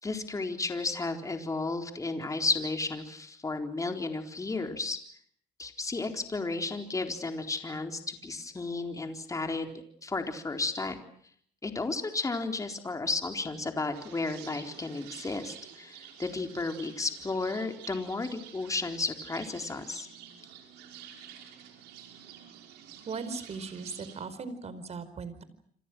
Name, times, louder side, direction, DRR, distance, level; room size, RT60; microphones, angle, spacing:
voice 1, 0.0-5.0 5.6-9.7 10.0-11.0 11.6-20.1, left 3 dB, 20° left, 5 dB, 4.0 m, -33 dB
sound 1, 13.9-24.3, right 9 dB, 90° right, 5.8 m, -49 dB
voice 2, 23.1-25.4, right 4 dB, 40° right, 13 dB, 4.8 m, -38 dB
28.0 x 27.0 x 6.3 m, 0.63 s
cardioid pair, 110°, 17 cm